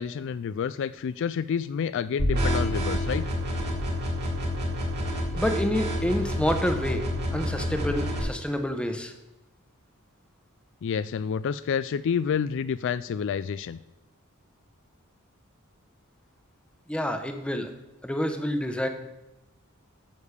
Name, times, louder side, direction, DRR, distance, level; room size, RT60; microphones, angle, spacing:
voice 1, 0.0-3.2 10.8-13.8, left 7 dB, 60° left, 15 dB, 0.3 m, -29 dB
sound 1, 2.2-8.2, equal, 50° right, 3.2 m, -28 dB
voice 2, 5.3-7.0 7.3-9.1 16.9-17.7 18.0-18.9, equal, 5° left, 6 dB, 1.0 m, -28 dB
9.5 x 7.2 x 6.7 m, 0.96 s
head